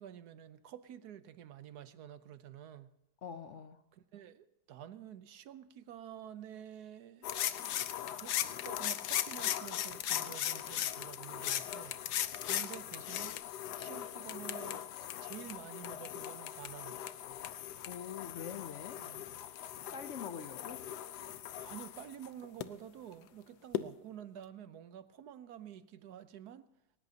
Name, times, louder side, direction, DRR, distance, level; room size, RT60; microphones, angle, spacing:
voice 1, 0.0-2.9 3.9-7.3 8.0-13.4 13.7-17.0 19.0-19.3 21.6-26.7, right 10 dB, 70° right, 1.3 m, -50 dB
voice 2, 3.2-3.8 17.9-19.1 19.9-20.9, left 7 dB, 60° left, 0.8 m, -44 dB
sound 1, 7.2-22.6 23.7-23.8, left 11 dB, 80° left, 1.3 m, -38 dB
20.0 x 19.0 x 2.8 m
omnidirectional pair, 1.8 m